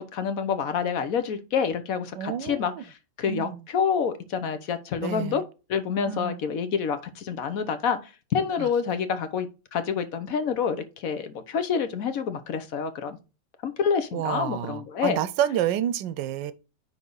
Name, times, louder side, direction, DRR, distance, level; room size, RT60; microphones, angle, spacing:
voice 1, 0.0-2.7 3.2-5.4 5.7-8.0 8.3-13.2 13.6-15.2, left 6 dB, 55° left, 1.2 m, -27 dB
voice 2, 2.2-2.8 3.3-3.6 5.0-5.4 6.1-6.4 8.6-8.7 14.1-16.5, right 11 dB, 90° right, 1.3 m, -29 dB
9.9 x 3.6 x 3.9 m
omnidirectional pair, 1.9 m